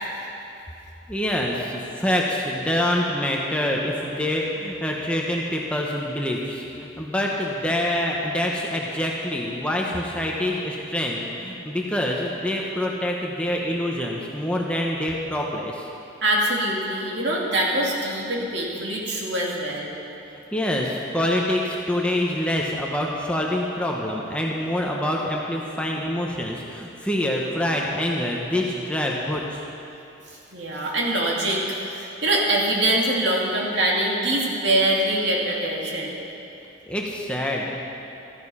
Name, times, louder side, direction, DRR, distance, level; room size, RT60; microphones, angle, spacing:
voice 1, 1.1-15.9 20.5-29.6 36.9-37.8, left 1 dB, 5° left, -2 dB, 1.0 m, -26 dB
voice 2, 16.2-19.9 30.5-36.1, right 1 dB, 60° right, -3 dB, 2.6 m, -24 dB
14.5 x 14.0 x 5.7 m, 2.9 s
head